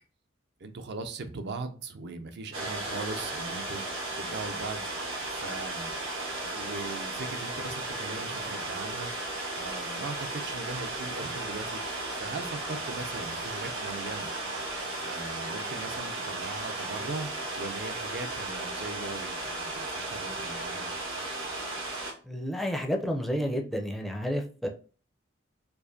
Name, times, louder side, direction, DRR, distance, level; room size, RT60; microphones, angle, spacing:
voice 1, 0.6-3.8 4.2-4.8 5.3-6.0 6.5-9.1 9.6-11.8 12.1-14.3 15.0-17.3 17.6-20.9, right 3 dB, 60° right, 8 dB, 0.5 m, -39 dB
sound 1, 2.5-22.1, right 2 dB, 75° right, 1.6 m, -35 dB
voice 2, 22.2-24.7, equal, ahead, 1 dB, 0.4 m, -30 dB
4.5 x 2.5 x 2.6 m, 0.38 s
head